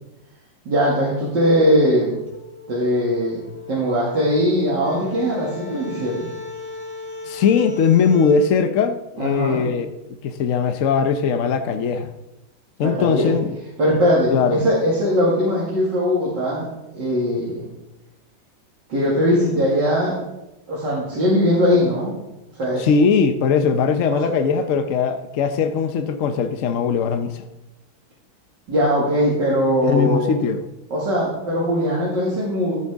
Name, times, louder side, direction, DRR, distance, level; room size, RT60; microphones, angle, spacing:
voice 1, 0.7-2.2 2.7-6.3 9.2-9.6 12.8-13.3 13.8-16.7 16.9-17.7 18.9-20.2 20.7-22.1 22.5-22.9 24.1-24.3 28.7-30.3 30.9-32.8, equal, 55° right, -6 dB, 2.8 m, -20 dB
sound 1, 2.3-8.4, left 2 dB, 50° left, 3.5 m, -36 dB
voice 2, 7.3-9.9 10.2-12.1 12.8-13.5 14.3-14.6 22.8-27.4 29.8-30.6, left 6 dB, 75° left, 8 dB, 0.7 m, -20 dB
14.5 x 9.0 x 3.5 m, 0.96 s
omnidirectional pair, 2.3 m